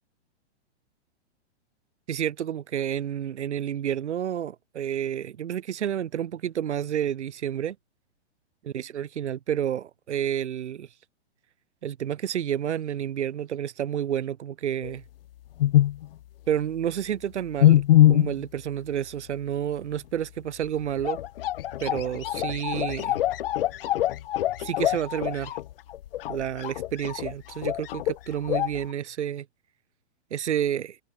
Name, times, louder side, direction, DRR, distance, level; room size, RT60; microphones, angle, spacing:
voice 1, 2.1-7.7 8.6-10.9 11.8-15.0 16.5-17.8 18.1-21.2 21.8-23.2 24.6-25.6 26.3-29.4 30.3-31.0, right 10 dB, 85° right, 1.7 m, -30 dB
sound 1, 14.8-14.9 15.6-16.1 17.6-18.4 20.6-20.7 21.0-28.2 28.4-28.9, left 13 dB, 55° left, 1.3 m, -23 dB
hypercardioid pair, 155°, 34 cm